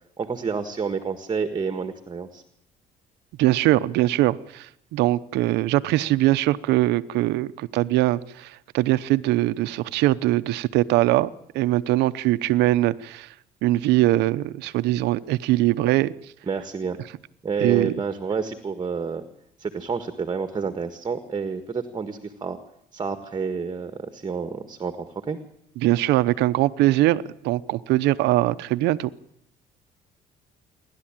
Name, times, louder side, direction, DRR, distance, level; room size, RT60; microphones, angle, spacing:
voice 1, 0.2-2.4 16.5-17.0 17.4-19.2 19.6-22.6 22.9-25.4, right 5 dB, 25° right, 9 dB, 1.6 m, -29 dB
voice 2, 3.4-11.3 11.5-13.3 13.6-16.1 17.6-17.9 25.8-29.1, right 16 dB, 85° right, 14 dB, 0.9 m, -22 dB
28.5 x 12.0 x 9.0 m, 0.75 s
cardioid pair, 110°, 17 cm